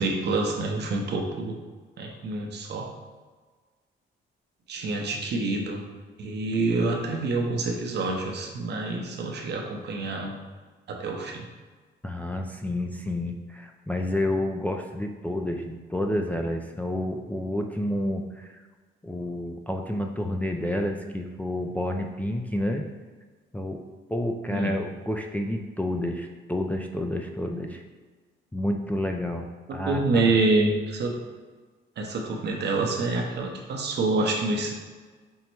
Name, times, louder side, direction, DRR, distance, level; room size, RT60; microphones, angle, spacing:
voice 1, 0.0-1.6 2.0-2.9 4.7-5.8 6.2-10.4 10.9-11.4 24.5-24.8 29.7-31.2 32.0-34.7, right 3 dB, 60° right, 2 dB, 0.8 m, -27 dB
voice 2, 12.0-18.6 19.0-22.8 23.5-23.8 24.1-27.8 28.5-30.3, left 1 dB, 10° left, 2 dB, 0.3 m, -29 dB
5.4 x 2.1 x 4.4 m, 1.4 s
cardioid pair, 90°, 20 cm